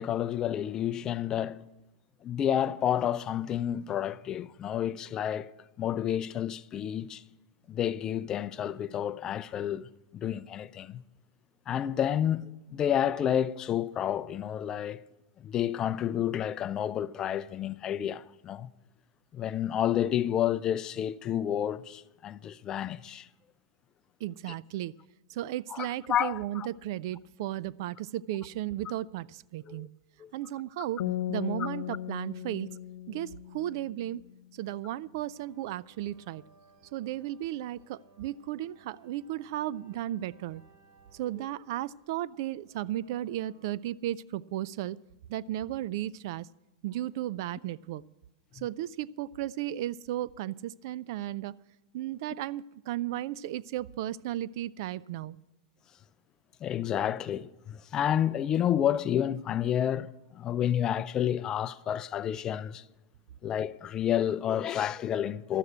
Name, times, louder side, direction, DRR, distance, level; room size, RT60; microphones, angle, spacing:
voice 1, 0.0-1.6 2.2-5.5 5.8-7.2 7.7-11.0 11.7-15.0 15.4-18.7 19.3-23.3 25.7-26.7 29.7-29.8 30.2-30.3 31.6-31.7 56.6-62.8 63.4-65.6, left 10 dB, 30° left, 0.4 m, -30 dB
voice 2, 24.2-24.9 25.3-29.9 30.3-31.0 31.3-32.8 33.1-34.2 34.5-36.4 36.9-40.6 41.1-45.0 45.3-46.5 46.8-48.0 48.5-51.6 51.9-55.4, right 13 dB, 60° right, 0.3 m, -35 dB
sound 1, 31.0-34.2, left 12 dB, 80° left, 1.0 m, -36 dB
sound 2, 35.3-43.7, right 2 dB, 35° right, 5.1 m, -63 dB
12.5 x 7.9 x 8.4 m
hypercardioid pair, 130°, 2 cm